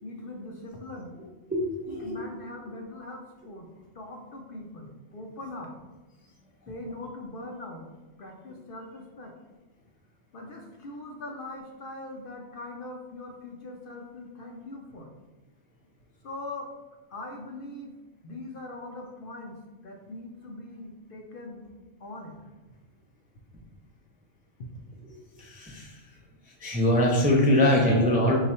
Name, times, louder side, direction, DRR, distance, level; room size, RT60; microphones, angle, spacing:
voice 1, 0.0-1.1 1.9-3.7 3.9-5.7 6.7-7.8 8.2-9.3 10.3-15.1 16.2-16.7 17.1-17.9 18.2-21.7 22.0-22.3 24.6-24.7, left 2 dB, 55° left, 1 dB, 0.7 m, -41 dB
voice 2, 1.5-2.2 25.4-26.0 26.6-28.4, left 1 dB, 15° right, -3 dB, 0.3 m, -23 dB
3.9 x 2.4 x 4.2 m, 1.2 s
omnidirectional pair, 1.2 m